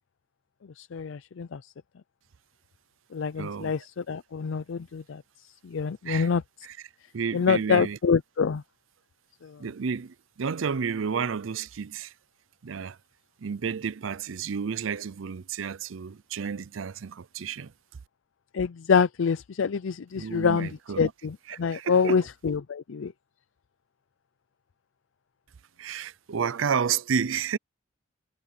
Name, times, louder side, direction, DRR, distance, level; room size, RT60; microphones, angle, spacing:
voice 1, 0.8-1.6 3.1-5.2 5.6-6.4 7.3-8.6 9.4-9.6 18.5-20.7 21.0-23.1, left 6 dB, 75° left, 0.5 m, -26 dB
voice 2, 3.4-3.8 6.1-6.3 6.6-6.8 7.1-8.0 9.6-12.1 12.6-13.0 13.4-17.7 20.1-21.1 21.5-22.2 25.8-27.6, right 6 dB, 80° right, 0.5 m, -31 dB
head